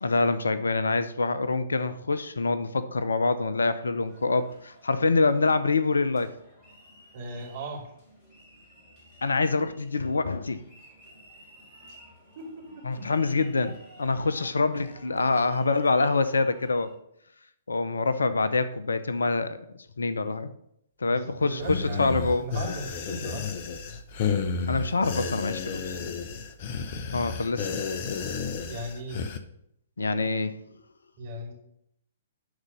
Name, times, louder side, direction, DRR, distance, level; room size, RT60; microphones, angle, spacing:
voice 1, 0.0-6.3 9.2-10.6 12.8-16.9 17.7-19.6 20.0-20.5 21.0-22.5 24.7-26.0 27.1-27.7 30.0-30.5, left 3 dB, 70° left, 13 dB, 0.7 m, -25 dB
sound 1, 4.0-17.0, equal, 25° left, 3.8 m, -54 dB
voice 2, 7.1-7.8 12.3-12.4 12.7-13.4 21.1-23.5 27.4-27.5 28.7-29.3 31.2-31.5, right 1 dB, 45° right, 1 dB, 2.8 m, -37 dB
sound 2, 21.6-29.4, left 5 dB, 40° left, 0.8 m, -32 dB
11.0 x 4.1 x 6.3 m, 0.74 s
figure-of-eight pair, 120°, 0 cm